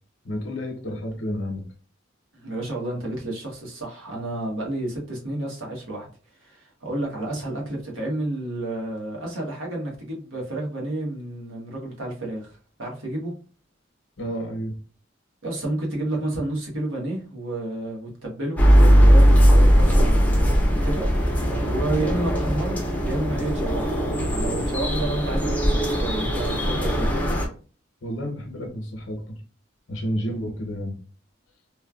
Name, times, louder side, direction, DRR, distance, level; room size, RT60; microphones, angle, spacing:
voice 1, 0.2-1.6 14.2-14.8 28.0-29.4 29.9-31.0, equal, 75° left, 0.8 m, -30 dB
voice 2, 2.3-6.1 6.4-13.3 15.4-22.8 23.0-24.0 24.3-27.1, right 1 dB, 90° right, 1.2 m, -31 dB
sound 1, 18.6-27.5, equal, 10° left, 0.5 m, -19 dB
3.2 x 2.2 x 2.3 m
head